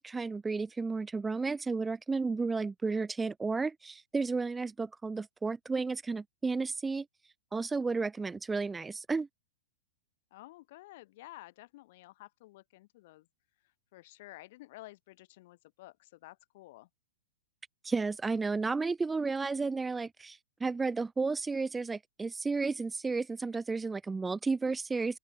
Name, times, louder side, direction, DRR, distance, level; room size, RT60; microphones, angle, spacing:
voice 1, 0.0-7.1 7.5-9.3 17.8-25.2, right 4 dB, 10° right, 0.7 m, -32 dB
voice 2, 10.3-13.3 13.6-16.9, left 18 dB, 50° left, 6.4 m, -52 dB
open air
hypercardioid pair, 145°, 0 cm